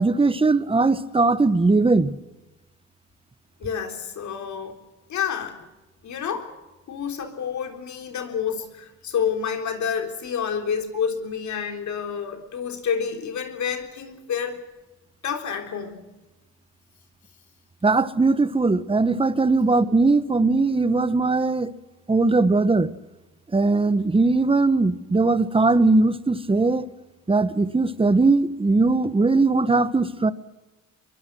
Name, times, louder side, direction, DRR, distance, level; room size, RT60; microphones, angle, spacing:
voice 1, 0.0-2.1 17.8-21.7 22.1-22.9 23.5-26.8 27.3-30.3, right 3 dB, 20° right, 1.2 m, -20 dB
voice 2, 3.6-4.8 5.1-5.7 6.0-6.5 6.9-14.6 15.2-16.0, left 7 dB, 70° left, 3.7 m, -29 dB
23.0 x 23.0 x 6.3 m
cardioid pair, 90°, 30 cm